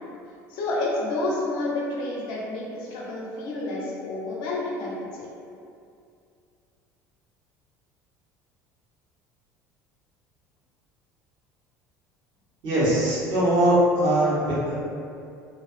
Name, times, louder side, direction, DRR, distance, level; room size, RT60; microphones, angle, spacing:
voice 1, 0.5-5.3, left 2 dB, 55° left, -5 dB, 0.6 m, -29 dB
voice 2, 12.6-14.8, right 1 dB, 50° right, -10 dB, 1.1 m, -21 dB
2.4 x 2.4 x 2.4 m, 2.5 s
figure-of-eight pair, 60°, 9 cm